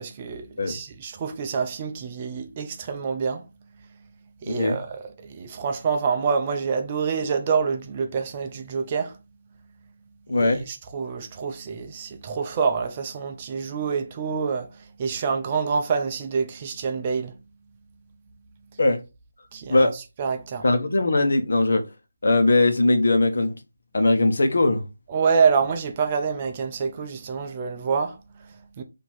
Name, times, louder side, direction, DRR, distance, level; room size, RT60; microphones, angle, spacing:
voice 1, 0.0-3.5 4.4-9.2 10.3-17.4 19.5-20.7 25.1-28.8, right 5 dB, 25° right, 0.5 m, -27 dB
voice 2, 4.4-4.8 10.3-10.6 18.8-19.0 19.7-19.9 20.6-21.8 22.2-23.6 23.9-24.8, left 2 dB, 60° left, 1.0 m, -20 dB
4.5 x 2.7 x 4.3 m
figure-of-eight pair, 170°, 0 cm